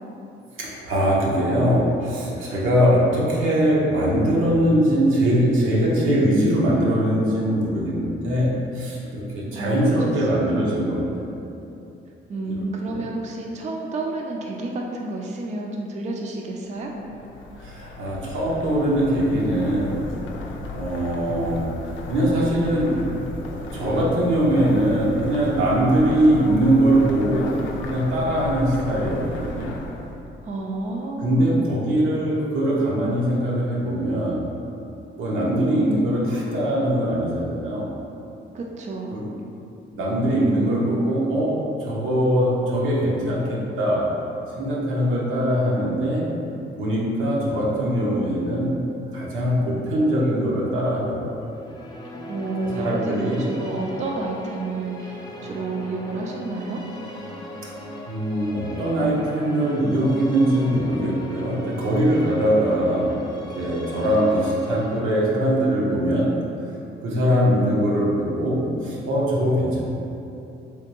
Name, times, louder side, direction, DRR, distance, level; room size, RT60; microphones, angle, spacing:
voice 1, 0.6-11.3 12.5-12.6 12.9-13.0 17.6-20.0 20.7-21.8 22.1-23.0 23.7-27.6 27.9-29.7 31.2-34.5 35.2-37.9 39.1-39.3 39.9-44.2 44.6-46.3 46.8-48.8 49.1-51.3 52.6-53.5 58.1-66.4 67.0-69.8, right 1 dB, 85° right, -5 dB, 0.8 m, -22 dB
voice 2, 9.5-10.6 12.3-16.9 30.4-31.5 38.5-39.1 52.3-56.8, right 2 dB, 35° right, 0 dB, 0.4 m, -30 dB
sound 1, 16.8-30.3, left 2 dB, 75° left, 0.4 m, -35 dB
sound 2, 51.4-67.5, equal, 20° left, 0.5 m, -39 dB
3.4 x 2.8 x 2.9 m, 2.8 s
cardioid pair, 90°, 20 cm